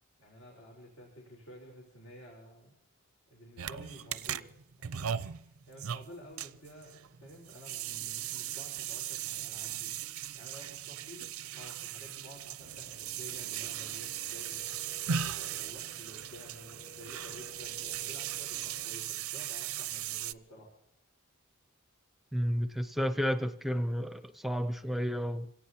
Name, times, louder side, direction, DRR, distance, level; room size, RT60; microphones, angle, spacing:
voice 1, 0.2-2.7 3.3-4.5 4.8-9.9 10.3-11.3 11.5-15.0 15.2-20.7, equal, 85° left, 4.2 m, -52 dB
sound 1, 3.6-20.3, right 9 dB, 80° right, 0.5 m, -38 dB
sound 2, 12.6-18.9, equal, 55° left, 2.0 m, -54 dB
voice 2, 22.3-25.5, equal, ahead, 0.5 m, -31 dB
27.0 x 17.5 x 2.8 m
head